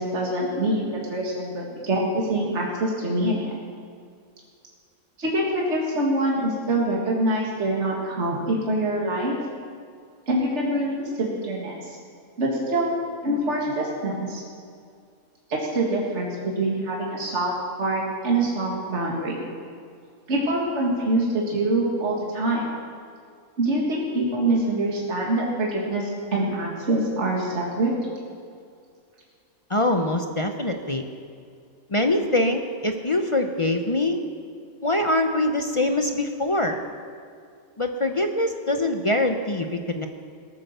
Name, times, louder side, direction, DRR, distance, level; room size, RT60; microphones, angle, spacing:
voice 1, 0.0-3.5 5.2-9.4 10.3-12.0 12.4-12.9 13.2-14.4 15.5-17.5 17.8-19.4 20.3-22.7 23.6-27.9, right 1 dB, 55° right, -3 dB, 2.2 m, -25 dB
voice 2, 29.7-31.0 31.9-34.2 34.8-36.8 37.8-40.1, left 1 dB, 35° left, 5 dB, 0.6 m, -23 dB
18.0 x 9.0 x 6.7 m, 2.3 s
omnidirectional pair, 1.5 m